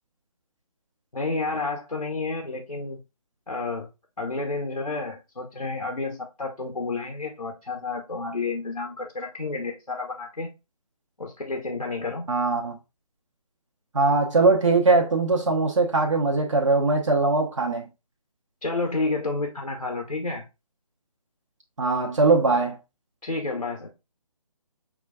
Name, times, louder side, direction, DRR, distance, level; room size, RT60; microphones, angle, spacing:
voice 1, 1.1-3.0 3.5-3.9 4.2-10.5 11.2-12.3 18.6-20.4 23.2-23.9, left 3 dB, 85° left, 0.9 m, -30 dB
voice 2, 12.3-12.7 13.9-17.9 21.8-22.8, right 3 dB, 55° right, 1.0 m, -21 dB
6.0 x 2.4 x 2.3 m
figure-of-eight pair, 145°, 19 cm